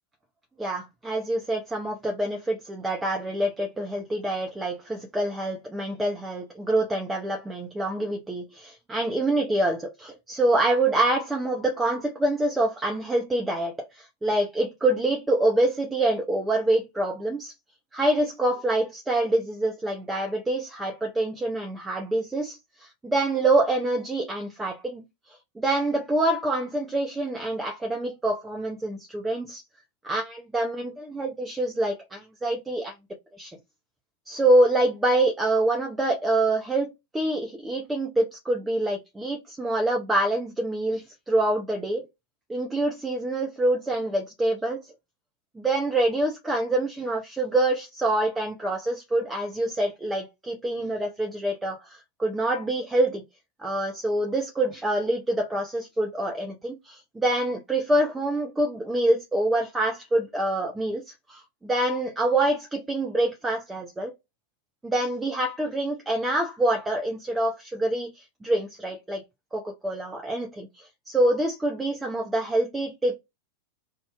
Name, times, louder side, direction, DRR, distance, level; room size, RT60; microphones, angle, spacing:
voice 1, 0.6-17.5 17.9-25.0 25.6-29.6 30.0-32.9 33.4-33.6 34.3-42.0 42.5-44.9 45.6-53.2 53.6-61.0 61.3-64.1 64.8-69.2 69.5-73.1, right 1 dB, 10° right, 0.6 m, -26 dB
2.6 x 2.1 x 3.2 m
figure-of-eight pair, 90°, 0 cm